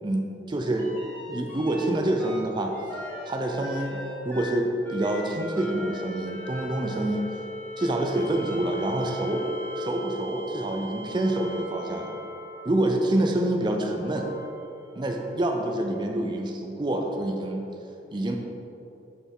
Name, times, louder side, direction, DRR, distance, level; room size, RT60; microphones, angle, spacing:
voice 1, 0.0-0.9 1.3-2.7 3.3-4.0 4.2-7.3 7.8-9.5 9.8-12.2 12.6-14.3 15.0-17.6 18.1-18.4, right 1 dB, 25° right, 2 dB, 0.4 m, -27 dB
sound 1, 0.8-1.9 2.2-13.0 13.8-15.4 17.1-17.2, equal, 10° left, 1.1 m, -39 dB
6.0 x 6.0 x 3.6 m, 2.8 s
head